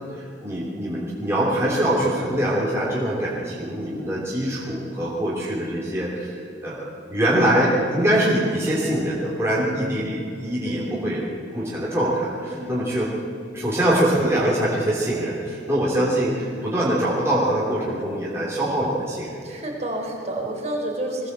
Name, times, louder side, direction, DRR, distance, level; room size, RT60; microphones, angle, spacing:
voice 1, 0.1-6.4 6.6-11.2 11.5-13.1 13.5-19.4, right 1 dB, 15° right, -6 dB, 3.2 m, -23 dB
voice 2, 10.6-11.2 12.5-12.7 19.4-21.3, right 1 dB, 35° right, 0 dB, 4.5 m, -30 dB
21.5 x 18.0 x 8.1 m, 2.5 s
head